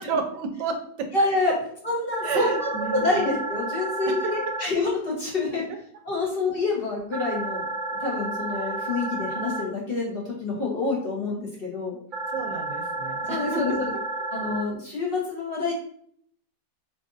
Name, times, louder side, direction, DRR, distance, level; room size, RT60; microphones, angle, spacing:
voice 1, 0.0-1.1 2.2-3.2 4.1-4.3 8.6-8.7 12.3-14.0, right 5 dB, 90° right, 6 dB, 1.3 m, -31 dB
voice 2, 1.1-1.5 1.8-5.6 6.0-7.7 8.0-12.0 13.3-13.9 14.3-15.7, left 3 dB, 35° left, -4 dB, 1.2 m, -27 dB
sound 1, 2.1-4.6 7.1-9.6 12.1-14.6, right 2 dB, 45° right, 0.6 m, -31 dB
3.8 x 2.6 x 3.8 m, 0.63 s
omnidirectional pair, 1.8 m